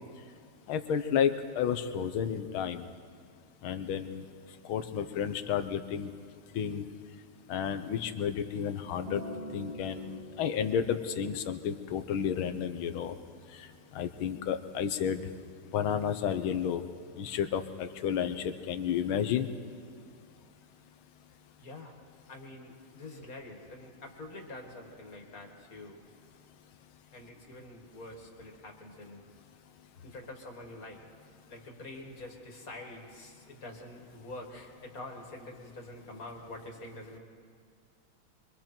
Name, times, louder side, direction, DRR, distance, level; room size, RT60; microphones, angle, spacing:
voice 1, 0.7-2.9 3.6-4.2 4.7-6.1 6.6-6.9 7.5-9.2 9.5-13.2 13.5-13.7 13.9-15.2 15.7-16.8 17.2-19.5, left 8 dB, 75° left, 9 dB, 1.7 m, -31 dB
Acoustic guitar, 9.1-13.3 14.2-14.3, equal, 65° right, 5.0 m, -46 dB
voice 2, 21.6-21.9 22.3-26.0 27.1-29.2 30.0-31.0 31.5-37.2, left 2 dB, 40° left, 2 dB, 2.5 m, -46 dB
25.0 x 24.0 x 4.5 m, 2.3 s
omnidirectional pair, 2.3 m